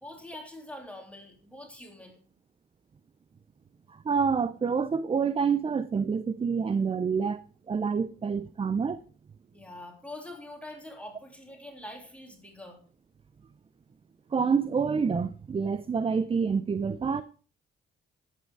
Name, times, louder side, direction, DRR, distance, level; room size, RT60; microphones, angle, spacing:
voice 1, 0.0-2.2 9.5-12.8, left 1 dB, 5° left, 3.2 m, -44 dB
voice 2, 4.0-7.4 7.7-9.0 14.3-17.2, right 5 dB, 30° right, 0.6 m, -27 dB
11.5 x 8.6 x 4.7 m
cardioid pair, 90°, 20 cm